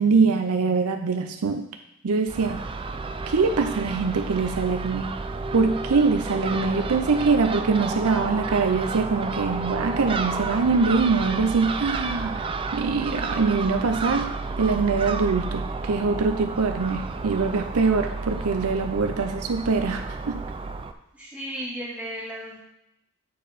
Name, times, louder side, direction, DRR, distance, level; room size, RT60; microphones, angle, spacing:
voice 1, 0.0-1.7 2.0-2.6 3.3-5.1 5.5-20.4, right 4 dB, 75° right, 6 dB, 0.6 m, -23 dB
Crow / Gull seagull, 2.3-20.9, right 3 dB, 25° right, 0.4 m, -31 dB
voice 2, 21.1-22.6, right 1 dB, 5° right, -6 dB, 2.1 m, -35 dB
8.5 x 4.4 x 5.0 m, 0.82 s
head